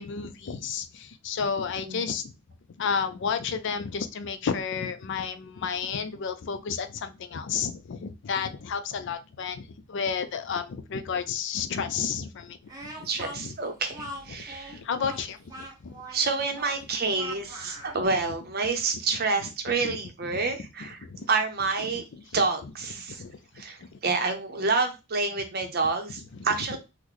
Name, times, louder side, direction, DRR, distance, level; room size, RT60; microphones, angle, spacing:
voice 1, 0.0-2.3 2.8-13.6 14.3-14.4 14.7-16.0 19.4-20.4 20.8-21.3 21.8-22.7 23.2-24.0 26.2-26.8, left 6 dB, 55° left, 0.4 m, -32 dB
Speech, 12.7-18.0, right 1 dB, 15° right, 0.8 m, -41 dB
voice 2, 13.0-14.8 16.1-21.0 21.3-22.0 22.3-23.2 23.6-23.8 24.0-26.8, right 4 dB, 45° right, 0.6 m, -28 dB
3.8 x 2.1 x 3.0 m
head